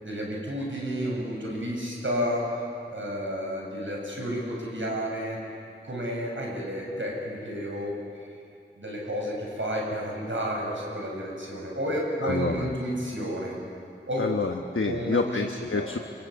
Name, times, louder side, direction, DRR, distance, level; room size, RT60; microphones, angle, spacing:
voice 1, 0.0-2.5 2.9-5.4 5.8-7.9 8.8-13.6 14.1-14.3 14.8-15.9, equal, 70° right, -2 dB, 7.8 m, -31 dB
voice 2, 12.2-12.8 14.2-16.0, left 3 dB, 75° left, 4 dB, 1.1 m, -28 dB
26.5 x 23.5 x 8.8 m, 2.4 s
wide cardioid pair, 45°, 21 cm